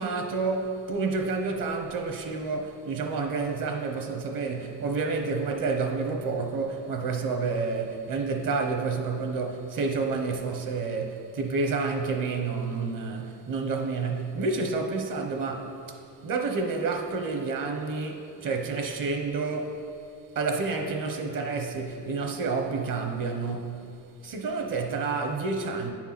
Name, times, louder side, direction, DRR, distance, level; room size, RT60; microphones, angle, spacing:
voice 1, 0.0-16.0 16.2-19.8 20.3-23.8 24.2-25.9, right 4 dB, 50° right, 1.1 m, -29 dB
9.3 x 4.6 x 5.9 m
cardioid pair, 100°, 43 cm